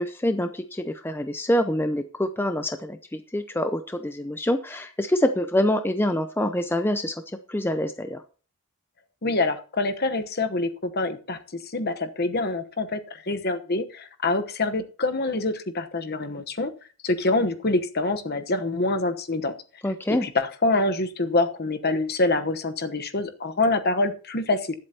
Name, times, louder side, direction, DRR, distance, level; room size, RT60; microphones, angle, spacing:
voice 1, 0.0-7.1 7.5-8.2 19.8-20.3, left 1 dB, 10° left, 8 dB, 0.5 m, -25 dB
voice 2, 9.2-16.7 17.0-19.5 20.2-24.8, left 2 dB, 45° left, 8 dB, 1.1 m, -25 dB
20.5 x 7.8 x 2.9 m, 0.38 s
head